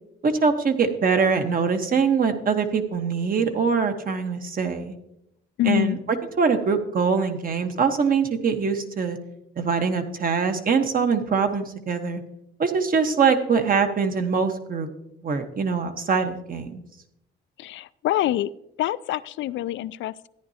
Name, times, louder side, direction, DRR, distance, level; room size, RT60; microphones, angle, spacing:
voice 1, 0.2-4.9 5.6-6.0 6.4-9.2 9.6-12.2 12.6-14.9 15.2-16.8, right 5 dB, 45° right, 7 dB, 1.3 m, -23 dB
voice 2, 5.6-6.0 17.6-18.5 18.8-20.3, left 14 dB, 70° left, 17 dB, 0.4 m, -25 dB
14.0 x 10.5 x 2.8 m, 0.81 s
cardioid pair, 90°, 20 cm